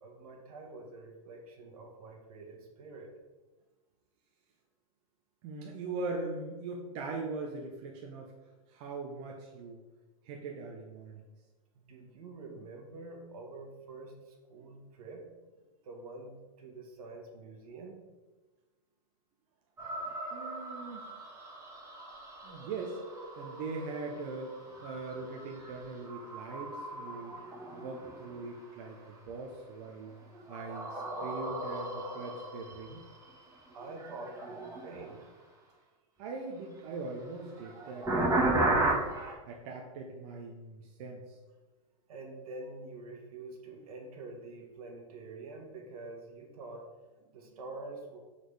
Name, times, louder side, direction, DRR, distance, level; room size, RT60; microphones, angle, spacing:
voice 1, 0.0-3.1 11.7-15.3 15.8-18.0 33.7-35.3 42.1-46.9 47.3-48.2, right 3 dB, 75° right, 2 dB, 1.4 m, -46 dB
voice 2, 5.4-8.3 8.7-9.8 10.2-11.2 20.3-21.0 22.4-23.0 23.4-27.4 27.7-30.1 30.5-33.0 36.2-39.1 39.5-41.4, right 3 dB, 50° right, 0 dB, 0.9 m, -41 dB
sound 1, 19.8-29.3 29.8-35.3 37.1-39.3, right 2 dB, 15° right, 1.6 m, -36 dB
5.0 x 4.2 x 4.8 m, 1.2 s
hypercardioid pair, 125°, 19 cm